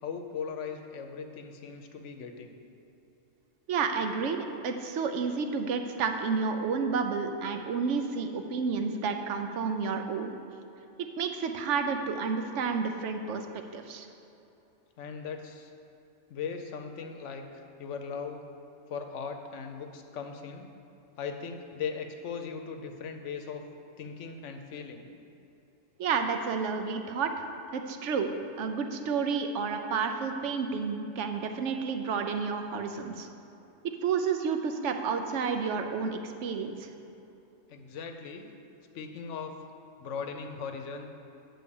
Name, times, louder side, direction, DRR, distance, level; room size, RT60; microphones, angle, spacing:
voice 1, 0.0-2.5 15.0-15.7 16.3-18.4 18.9-20.7 21.2-23.6 24.0-25.1 37.7-38.5 38.9-39.6 40.0-41.1, left 6 dB, 70° left, 5 dB, 1.0 m, -38 dB
voice 2, 3.7-10.4 11.2-14.1 26.0-27.4 27.7-28.3 28.6-33.3 34.0-36.9, right 5 dB, 70° right, 6 dB, 0.9 m, -30 dB
8.5 x 3.8 x 6.9 m, 2.9 s
omnidirectional pair, 1.3 m